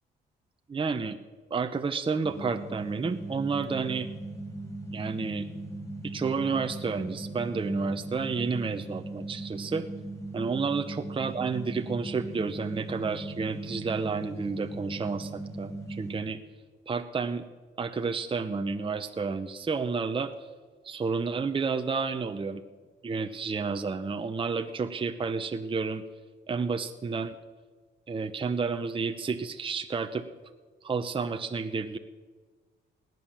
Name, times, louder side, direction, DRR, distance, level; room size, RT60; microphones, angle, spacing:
voice 1, 0.7-1.2 1.5-4.1 4.9-5.5 6.0-9.9 10.3-16.4 16.9-17.4 17.8-20.3 20.8-22.6 23.0-26.0 26.5-27.3 28.1-30.3 30.8-32.0, right 4 dB, 25° right, 7 dB, 0.8 m, -31 dB
sound 1, 2.2-16.2, right 2 dB, 15° left, 4.5 m, -39 dB
19.5 x 9.3 x 7.2 m, 1.4 s
cardioid pair, 90°, 20 cm